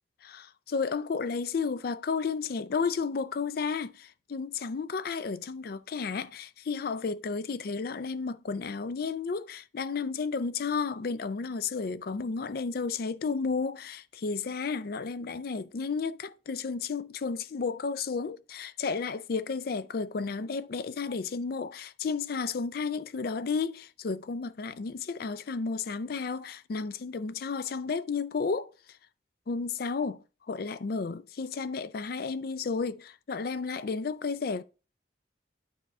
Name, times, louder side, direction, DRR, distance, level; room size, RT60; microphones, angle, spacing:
voice 1, 0.2-28.7 29.5-34.6, left 5 dB, 55° left, 0.4 m, -32 dB
9.3 x 4.2 x 3.5 m
head